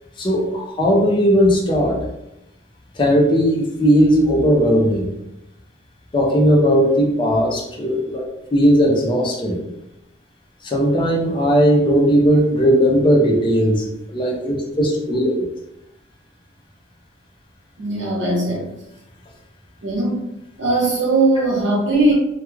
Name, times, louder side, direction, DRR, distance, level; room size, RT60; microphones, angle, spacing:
voice 1, 0.2-2.0 3.0-5.1 6.1-8.2 8.5-9.7 10.6-13.8 14.1-15.4, equal, 25° left, -3 dB, 0.5 m, -17 dB
voice 2, 17.8-18.7 19.8-22.1, right 2 dB, 65° right, -4 dB, 1.0 m, -19 dB
2.3 x 2.3 x 3.0 m, 0.89 s
head